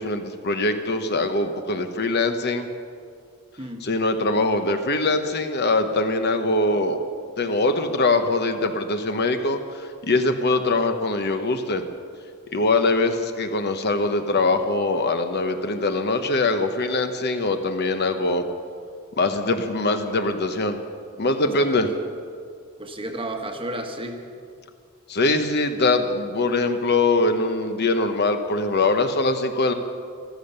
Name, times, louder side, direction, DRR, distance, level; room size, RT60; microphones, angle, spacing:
voice 1, 0.0-2.7 3.8-7.0 7.4-11.8 12.5-18.5 19.2-20.8 21.2-21.9 25.1-29.7, left 2 dB, 50° left, 7 dB, 0.9 m, -22 dB
voice 2, 21.4-21.8 22.8-24.2, right 1 dB, 25° right, 4 dB, 1.2 m, -32 dB
14.5 x 13.5 x 6.7 m, 2.2 s
head